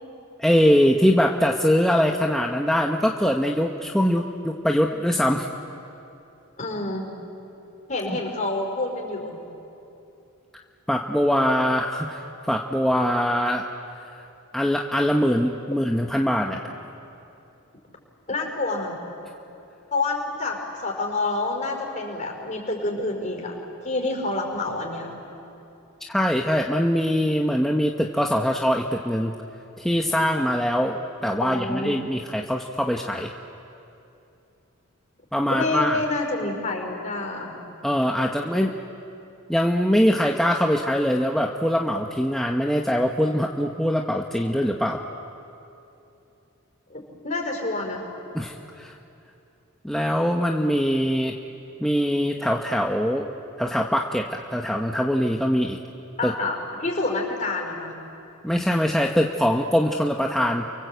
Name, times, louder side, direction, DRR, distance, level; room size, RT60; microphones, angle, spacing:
voice 1, 0.4-5.5 8.1-8.2 10.9-13.7 14.5-16.6 26.1-29.3 29.8-31.0 31.2-33.3 35.3-36.0 37.8-38.8 39.5-45.0 48.3-48.9 49.8-51.4 51.8-53.3 53.6-55.8 56.2-56.3 58.4-60.6, equal, ahead, 0 dB, 0.9 m, -22 dB
voice 2, 6.6-7.1 7.9-9.4 18.3-19.0 19.9-20.6 20.8-23.6 23.8-25.1 31.4-31.9 35.5-37.6 46.9-48.0 56.2-57.9, left 2 dB, 35° left, 1 dB, 5.1 m, -28 dB
30.0 x 24.0 x 8.1 m, 2.8 s
head